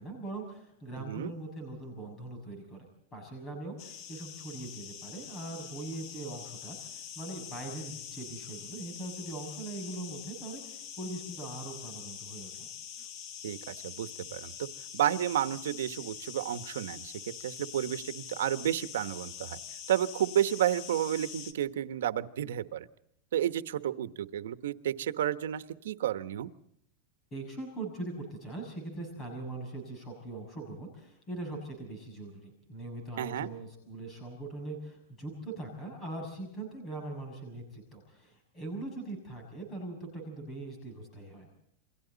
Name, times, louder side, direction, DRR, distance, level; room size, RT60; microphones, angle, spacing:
voice 1, 0.0-12.7 27.3-41.5, right 2 dB, 15° left, 3 dB, 6.5 m, -41 dB
voice 2, 1.0-1.3 13.4-14.7 14.9-17.1 17.4-19.6 19.9-22.9 23.3-26.5 33.2-33.5, right 11 dB, 85° right, 11 dB, 1.2 m, -31 dB
sound 1, 3.8-21.5, left 8 dB, 35° left, 1.7 m, -45 dB
28.5 x 23.5 x 4.1 m, 0.73 s
supercardioid pair, 175°, 0 cm